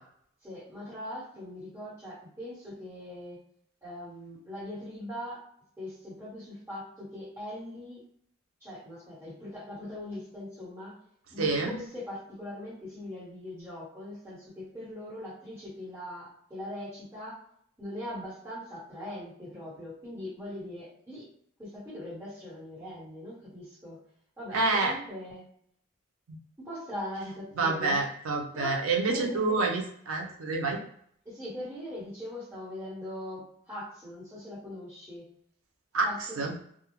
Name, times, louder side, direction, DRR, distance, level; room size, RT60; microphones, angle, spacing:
voice 1, 0.4-3.4 3.8-5.4 5.8-8.0 8.6-10.9 11.3-17.4 17.8-21.3 21.6-24.0 24.4-25.4 26.6-28.0 28.5-28.8 29.1-29.6 31.2-35.2 36.0-36.4, left 1 dB, 15° right, -9 dB, 1.2 m, -41 dB
voice 2, 11.4-11.8 24.5-24.9 27.6-30.8 35.9-36.1 36.4-36.5, right 3 dB, 85° right, 1 dB, 0.5 m, -27 dB
2.3 x 2.0 x 3.0 m, 0.65 s
head